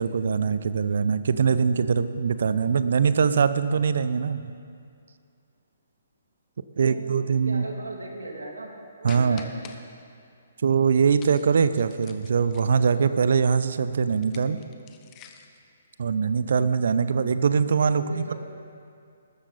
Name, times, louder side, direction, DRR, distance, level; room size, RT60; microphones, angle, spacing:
voice 1, 0.0-4.4 6.8-7.7 9.0-9.5 10.6-14.6 16.0-18.3, right 6 dB, 60° right, 13 dB, 0.7 m, -22 dB
voice 2, 6.8-8.7 9.0-9.5 18.0-18.3, right 2 dB, 75° right, 1 dB, 2.8 m, -38 dB
sound 1, 9.1-9.8 11.2-13.1 14.1-15.6, left 9 dB, 25° left, 1.1 m, -47 dB
20.0 x 13.5 x 4.2 m, 2.4 s
figure-of-eight pair, 130°, 0 cm